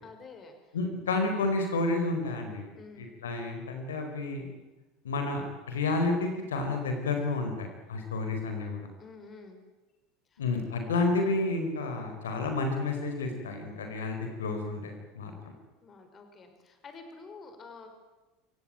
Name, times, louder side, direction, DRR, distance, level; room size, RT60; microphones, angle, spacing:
voice 1, 0.0-0.8 2.8-3.1 9.0-9.6 10.3-10.4 15.8-17.9, left 4 dB, 30° left, 6 dB, 5.2 m, -49 dB
voice 2, 0.7-2.7 3.0-4.4 5.0-8.9 10.4-15.3, left 3 dB, 80° left, 5 dB, 4.5 m, -30 dB
27.5 x 17.0 x 9.3 m, 1.1 s
hypercardioid pair, 80°, 0 cm